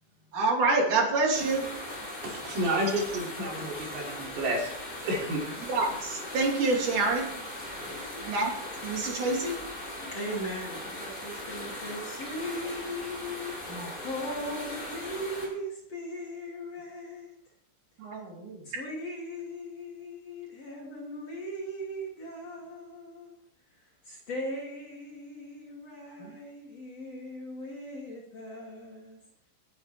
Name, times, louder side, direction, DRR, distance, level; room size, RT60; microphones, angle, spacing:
voice 1, 0.3-1.7 5.7-7.3 8.2-8.6 8.8-9.6 13.7-14.0 18.0-18.6 26.2-26.3, right 3 dB, 45° right, 0 dB, 3.9 m, -27 dB
sound 1, 1.3-15.5, left 1 dB, 20° left, 6.1 m, -39 dB
voice 2, 2.2-4.7 5.0-5.4 7.8-8.0, right 1 dB, 85° right, -2 dB, 6.5 m, -31 dB
voice 3, 10.1-17.3 18.6-23.4 24.0-29.2, equal, 40° left, -3 dB, 3.3 m, -38 dB
19.5 x 9.4 x 4.6 m, 0.75 s
omnidirectional pair, 5.5 m